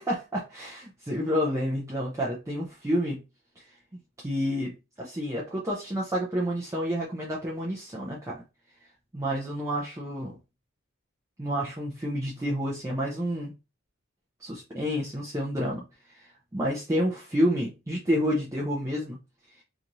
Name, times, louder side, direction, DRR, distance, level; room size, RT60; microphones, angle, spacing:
voice 1, 0.0-3.2 3.6-3.7 4.2-8.4 9.1-10.4 11.4-13.5 14.4-19.2, equal, 15° right, -5 dB, 0.4 m, -29 dB
2.6 x 2.4 x 2.9 m, 0.28 s
head